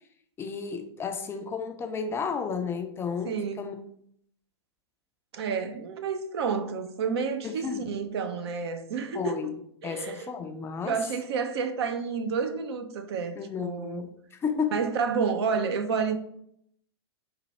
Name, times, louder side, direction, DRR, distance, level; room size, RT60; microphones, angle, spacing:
voice 1, 0.4-3.8 7.4-7.9 9.1-11.0 13.4-14.8, left 6 dB, 15° left, 0.4 m, -33 dB
voice 2, 3.2-3.7 5.3-9.5 9.8-10.3 10.8-14.1 14.7-16.1, right 5 dB, 65° right, 0.6 m, -30 dB
4.1 x 2.2 x 4.1 m
hypercardioid pair, 110°, 15 cm